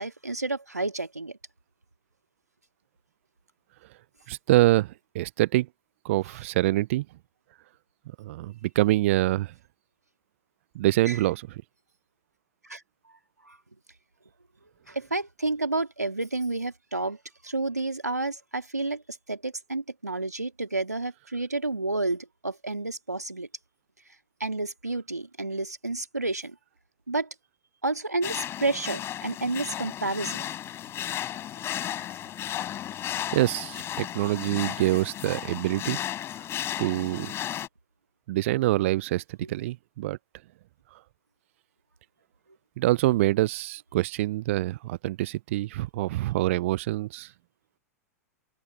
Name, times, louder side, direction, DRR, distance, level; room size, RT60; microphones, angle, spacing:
voice 1, 0.0-1.4 11.0-11.2 12.6-12.8 13.4-13.6 14.9-17.2 17.4-23.5 24.4-26.6 27.1-27.3 27.8-30.4 39.4-39.5, right 2 dB, 90° right, 2.4 m, -30 dB
voice 2, 4.3-5.7 6.0-7.1 8.2-9.5 10.7-11.5 33.3-36.0 36.8-37.3 38.3-39.2 39.5-40.2 42.8-47.3, right 16 dB, 55° right, 0.5 m, -25 dB
sound 1, 28.2-37.7, left 11 dB, 30° left, 7.4 m, -34 dB
open air
figure-of-eight pair, 95°, 9 cm